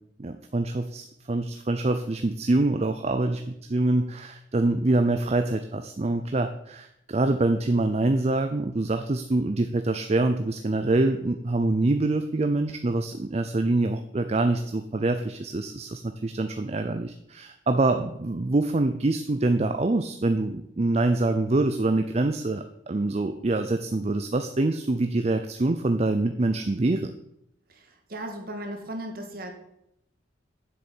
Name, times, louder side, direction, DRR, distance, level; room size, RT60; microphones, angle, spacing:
voice 1, 0.2-27.1, right 2 dB, 35° right, 7 dB, 0.5 m, -25 dB
voice 2, 27.7-29.5, right 1 dB, 50° right, 4 dB, 1.8 m, -36 dB
7.8 x 6.8 x 7.3 m, 0.79 s
head